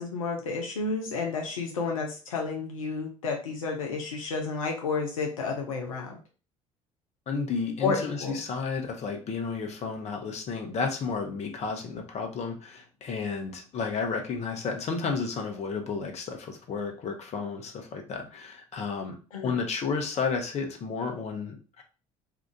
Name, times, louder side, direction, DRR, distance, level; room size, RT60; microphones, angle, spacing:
voice 1, 0.0-6.2 7.8-8.4 19.3-19.5, left 4 dB, 80° left, 1 dB, 0.6 m, -31 dB
voice 2, 7.3-19.2 19.4-21.8, left 5 dB, 40° left, 4 dB, 0.8 m, -32 dB
2.8 x 2.4 x 3.6 m, 0.35 s
figure-of-eight pair, 55°, 17 cm